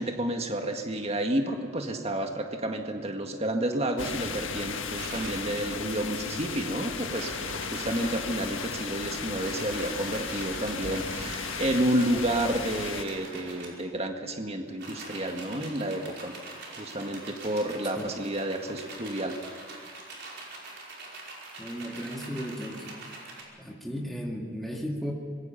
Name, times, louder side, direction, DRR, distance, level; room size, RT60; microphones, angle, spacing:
voice 1, 0.0-16.3 16.8-19.4, right 1 dB, 30° right, 4 dB, 1.9 m, -30 dB
sound 1, 4.0-13.0, left 5 dB, 70° left, 1.7 m, -35 dB
sound 2, 5.0-5.5 6.6-8.9 9.2-13.8 14.7-23.4, right 3 dB, 55° right, 5.2 m, -44 dB
voice 2, 21.6-23.0 23.6-25.1, equal, ahead, -2 dB, 2.1 m, -35 dB
25.5 x 21.5 x 5.8 m, 2.3 s
head